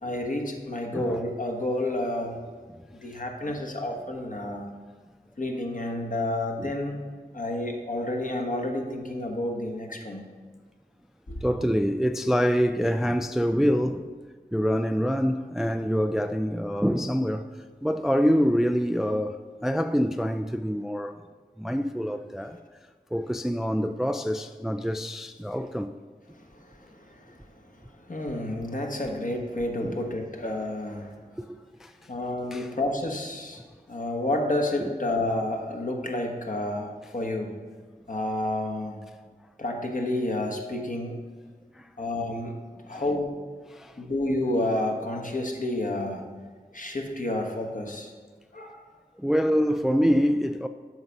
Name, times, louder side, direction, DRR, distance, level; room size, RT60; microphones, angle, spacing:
voice 1, 0.0-2.4 3.0-4.7 5.4-7.0 7.3-10.2 11.3-11.4 25.5-25.6 26.3-31.2 32.1-33.6 33.9-37.6 38.1-39.0 39.6-41.2 42.0-42.6 42.9-43.3 44.0-46.2 46.7-48.1 48.5-48.8, left 1 dB, 55° left, 1.3 m, -30 dB
voice 2, 11.4-14.1 14.5-17.5 17.8-21.2 21.6-22.6 23.1-25.9 29.8-30.0 31.4-31.9 32.5-32.7 34.8-34.9 41.7-41.9 42.9-43.0 43.7-44.0 49.2-50.7, equal, ahead, 0.3 m, -26 dB
7.9 x 5.8 x 5.2 m
wide cardioid pair, 45°, 16 cm